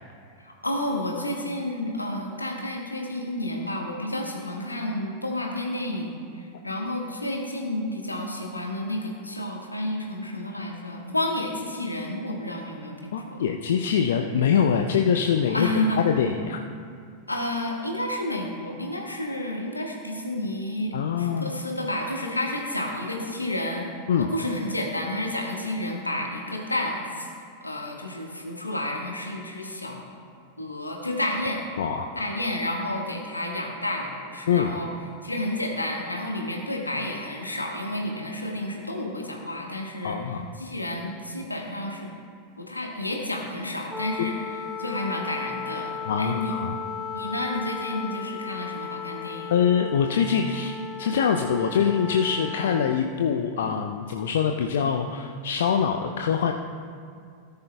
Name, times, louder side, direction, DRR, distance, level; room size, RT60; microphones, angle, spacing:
voice 1, 0.4-13.4 15.5-16.0 17.3-23.9 24.3-27.3 27.6-30.0 30.6-31.7 32.1-34.9 35.2-42.1 42.6-45.9 46.2-46.5 47.1-49.5, left 1 dB, 85° left, 0 dB, 1.6 m, -30 dB
voice 2, 13.1-15.7 16.0-16.6 20.9-21.5 24.1-24.3 31.8-32.1 34.5-34.7 40.0-40.5 44.2-44.3 46.1-46.8 49.5-50.7 51.0-56.5, left 7 dB, 60° left, 4 dB, 0.5 m, -24 dB
Wind instrument woodwind instrument, 43.9-53.1, left 6 dB, 5° left, 0.5 m, -36 dB
17.5 x 10.5 x 2.3 m, 2.3 s
figure-of-eight pair, 90°, 0 cm